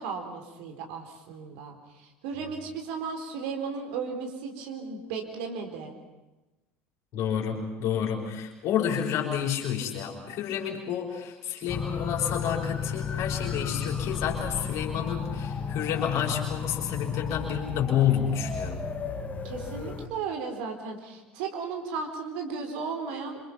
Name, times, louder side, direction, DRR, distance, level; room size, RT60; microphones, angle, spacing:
voice 1, 0.0-5.9 19.4-23.4, right 5 dB, 55° right, 3 dB, 4.1 m, -35 dB
voice 2, 7.1-18.8, left 9 dB, 45° left, 0 dB, 5.4 m, -29 dB
sound 1, 11.7-20.1, left 6 dB, 20° left, 2.5 m, -33 dB
27.5 x 27.0 x 5.9 m, 1.1 s
figure-of-eight pair, 70°, 7 cm